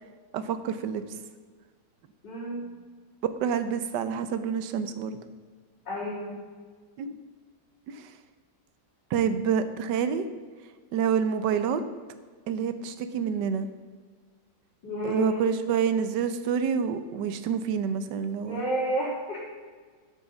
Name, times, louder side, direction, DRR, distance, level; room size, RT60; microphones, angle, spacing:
voice 1, 0.3-1.0 3.4-5.2 7.0-7.1 9.1-10.2 10.9-11.8 12.5-13.7 15.0-18.6, right 7 dB, 75° right, 10 dB, 1.5 m, -27 dB
voice 2, 2.2-2.7 5.9-6.4 14.8-15.4 18.4-19.4, equal, 75° left, -8 dB, 4.1 m, -31 dB
12.0 x 8.4 x 7.1 m, 1.5 s
omnidirectional pair, 1.9 m